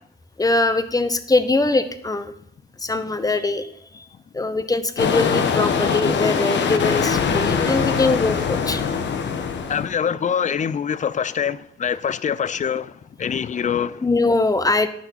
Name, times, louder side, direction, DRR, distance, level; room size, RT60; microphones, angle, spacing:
voice 1, 0.4-2.3 2.8-3.7 3.9-4.0 4.3-8.8 14.0-14.9, left 2 dB, 20° left, 1.0 m, -22 dB
sound 1, 5.0-9.9, left 6 dB, 65° left, 1.3 m, -22 dB
voice 2, 9.7-14.1, left 7 dB, 40° left, 0.5 m, -24 dB
10.5 x 6.1 x 5.8 m
cardioid pair, 90°, 20 cm